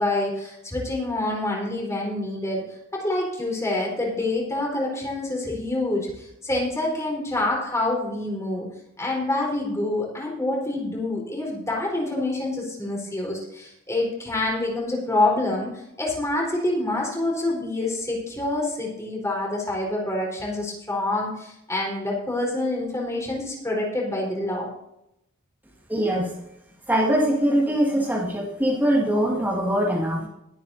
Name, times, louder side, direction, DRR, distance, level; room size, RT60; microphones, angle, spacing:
voice 1, 0.0-2.6 2.9-8.7 9.0-24.7, left 2 dB, 15° left, -2 dB, 4.1 m, -27 dB
voice 2, 25.9-26.3 26.9-30.3, right 1 dB, 10° right, -4 dB, 2.0 m, -22 dB
21.5 x 9.2 x 2.7 m, 0.81 s
head